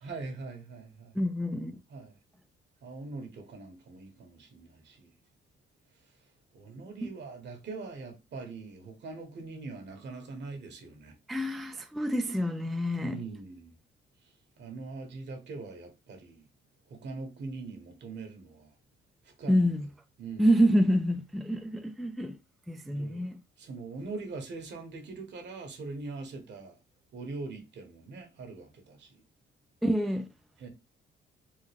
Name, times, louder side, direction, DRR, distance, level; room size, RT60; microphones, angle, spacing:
voice 1, 0.0-1.2 1.9-2.2 2.8-5.1 6.5-11.1 13.0-13.8 14.2-16.5 16.9-18.7 19.2-19.7 20.2-20.5 22.8-23.3 23.6-26.8 27.1-29.2 30.6-30.7, right 3 dB, 65° right, 1.3 m, -42 dB
voice 2, 1.2-1.8 11.3-13.2 19.5-19.9 20.4-22.4 22.7-23.4 29.8-30.3, equal, ahead, 0.3 m, -27 dB
3.7 x 2.2 x 3.4 m
cardioid pair, 90°, 20 cm